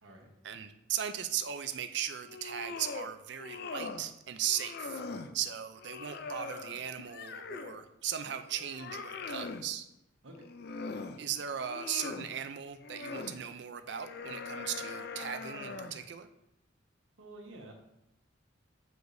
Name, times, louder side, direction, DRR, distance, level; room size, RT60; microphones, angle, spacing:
voice 1, 0.4-5.0 5.3-9.9 11.2-16.3, right 9 dB, 60° right, 9 dB, 0.4 m, -37 dB
sound 1, 2.2-3.1 3.4-4.1 4.4-5.3 5.8-7.8 8.3-9.7 10.3-11.2 11.6-12.3 12.8-13.4 13.9-16.1, left 4 dB, 55° left, 0.4 m, -42 dB
voice 2, 17.2-17.7, right 2 dB, 85° right, 1 dB, 1.2 m, -49 dB
7.9 x 4.8 x 2.6 m, 0.84 s
head